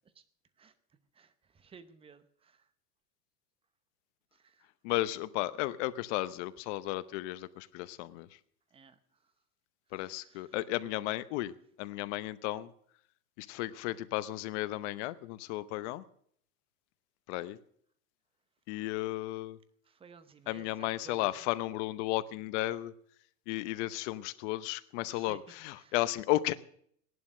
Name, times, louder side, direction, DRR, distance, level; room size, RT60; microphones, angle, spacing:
voice 1, 1.2-2.6 4.4-4.6 8.7-9.0 10.0-10.5 19.9-21.3 25.1-25.4 25.8-25.9, right 5 dB, 10° right, 12 dB, 0.8 m, -56 dB
voice 2, 4.8-8.3 9.9-11.5 11.8-12.7 13.4-16.0 17.3-17.6 18.7-19.6 20.5-22.9 23.5-26.5, left 17 dB, 45° left, 14 dB, 0.9 m, -34 dB
17.0 x 11.0 x 6.4 m, 0.65 s
supercardioid pair, 140°, 48 cm